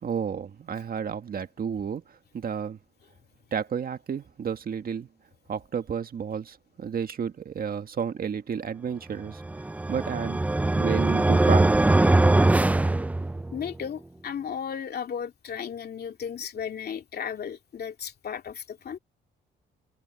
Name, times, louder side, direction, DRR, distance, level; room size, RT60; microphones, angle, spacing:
voice 1, 0.0-2.8 3.5-5.1 5.5-9.4 9.9-10.4 10.7-11.8, right 7 dB, 50° right, 1.7 m, -31 dB
sound 1, 9.4-13.7, right 2 dB, 5° right, 0.3 m, -22 dB
voice 2, 13.5-19.0, left 7 dB, 55° left, 2.6 m, -35 dB
cardioid pair, 90°, 20 cm